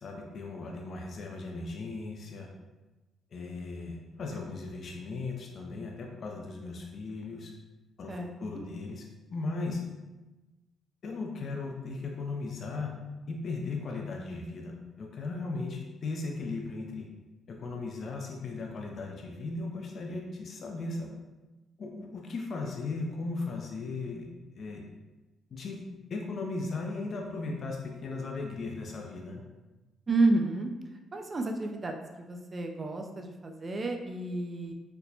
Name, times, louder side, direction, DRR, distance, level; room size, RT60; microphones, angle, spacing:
voice 1, 0.0-2.5 3.3-7.5 8.0-9.0 9.3-9.8 11.0-12.9 13.3-17.1 17.5-21.2 21.8-24.3 24.6-24.8 25.5-25.8 26.1-29.4, left 3 dB, 55° left, 0 dB, 0.4 m, -37 dB
voice 2, 8.1-8.6 30.1-30.7 31.1-34.7, right 2 dB, 30° right, 3 dB, 0.4 m, -30 dB
4.2 x 2.1 x 2.7 m, 1.1 s
cardioid pair, 90°, 0 cm